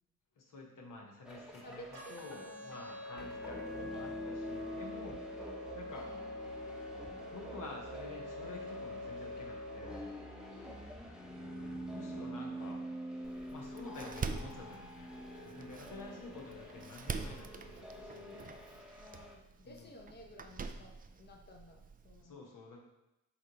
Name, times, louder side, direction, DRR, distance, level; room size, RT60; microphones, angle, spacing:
voice 1, 0.4-5.3 5.7-6.1 7.3-10.5 11.9-12.8 13.5-18.5 19.6-19.9 22.2-22.8, left 3 dB, 65° left, 0 dB, 0.9 m, -50 dB
voice 2, 1.3-3.2 3.5-3.7 5.3-5.5 5.9-6.1 10.5-10.9 19.0-22.4, equal, 30° left, 1 dB, 0.8 m, -55 dB
sound 1, 1.3-19.3, equal, ahead, 0.9 m, -46 dB
sound 2, 1.9-9.9, left 2 dB, 70° right, 1.0 m, -46 dB
Door, 13.2-22.2, right 5 dB, 25° right, 0.3 m, -45 dB
4.1 x 3.2 x 3.8 m, 0.92 s
supercardioid pair, 45°, 34 cm